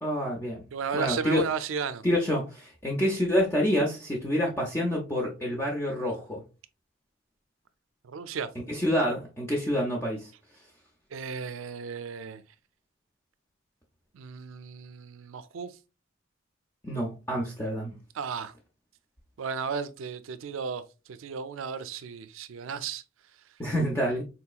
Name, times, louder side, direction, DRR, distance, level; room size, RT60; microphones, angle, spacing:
voice 1, 0.0-0.6 0.9-1.5 2.0-6.4 8.7-10.3 16.8-17.9 23.6-24.2, equal, 15° left, 0.5 m, -27 dB
voice 2, 0.7-2.0 8.0-8.5 11.1-12.4 14.1-15.8 18.1-18.5 19.4-20.8 21.1-23.0, right 6 dB, 75° right, 0.4 m, -34 dB
3.9 x 2.8 x 2.3 m
head